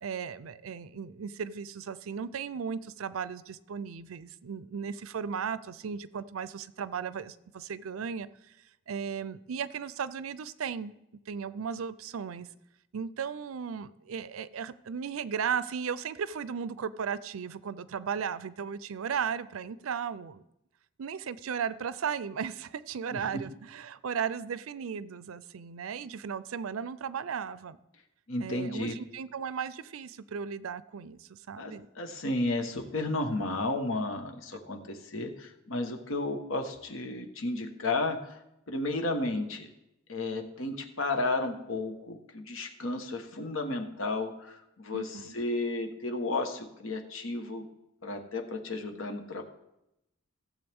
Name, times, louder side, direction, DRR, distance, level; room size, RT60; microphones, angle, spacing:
voice 1, 0.0-8.3 8.9-11.0 11.3-12.5 12.9-20.4 21.0-27.8 28.4-31.9 44.9-45.4, right 7 dB, 90° right, 0.5 m, -36 dB
voice 2, 28.3-29.0 31.6-38.4 38.7-39.7 40.1-47.6 48.0-49.4, left 2 dB, 75° left, 1.3 m, -33 dB
16.0 x 7.4 x 3.6 m
head